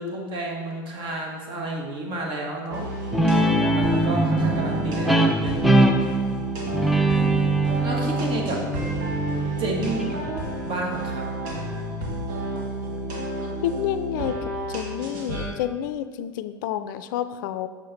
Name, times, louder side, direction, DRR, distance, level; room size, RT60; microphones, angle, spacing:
voice 1, 0.0-2.9 3.7-5.8 7.8-8.6 9.6-10.2 10.6-11.3, right 2 dB, 50° right, 0 dB, 1.5 m, -31 dB
sound 1, 2.7-15.5, right 1 dB, 70° right, 1.3 m, -31 dB
Guitar, 3.1-10.3, right 2 dB, ahead, 0.6 m, -22 dB
voice 2, 13.6-14.4 14.7-17.7, left 10 dB, 70° left, 12 dB, 0.4 m, -29 dB
6.6 x 4.8 x 4.0 m, 1.4 s
hypercardioid pair, 75°, 11 cm